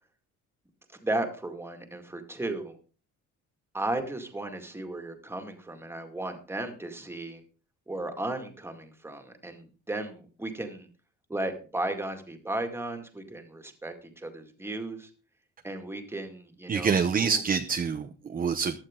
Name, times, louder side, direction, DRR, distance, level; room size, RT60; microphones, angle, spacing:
voice 1, 1.0-2.8 3.7-7.4 7.9-10.9 11.3-15.1 15.6-17.4, right 2 dB, 10° right, 5 dB, 2.2 m, -35 dB
voice 2, 16.7-18.8, right 6 dB, 30° right, 8 dB, 0.8 m, -26 dB
15.5 x 11.5 x 3.8 m, 0.36 s
cardioid pair, 150°, 31 cm